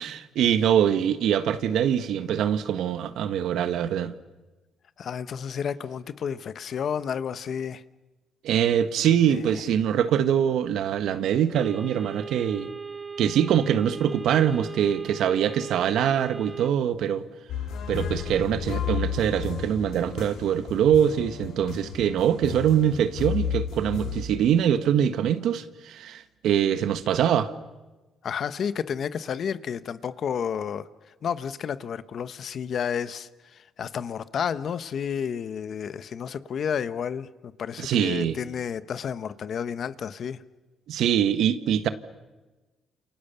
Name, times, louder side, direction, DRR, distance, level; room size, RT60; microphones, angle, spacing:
voice 1, 0.0-4.1 8.4-12.7 13.2-17.3 17.9-27.5 37.8-38.4 40.9-41.9, right 9 dB, 80° right, 1.5 m, -23 dB
voice 2, 5.0-7.8 9.3-9.6 28.2-30.9 31.2-40.4, left 7 dB, 60° left, 1.2 m, -31 dB
sound 1, 11.5-16.7, right 5 dB, 20° right, 0.9 m, -38 dB
sound 2, 17.5-24.2, left 8 dB, 85° left, 4.0 m, -33 dB
29.0 x 28.5 x 7.0 m
cardioid pair, 90°, 0 cm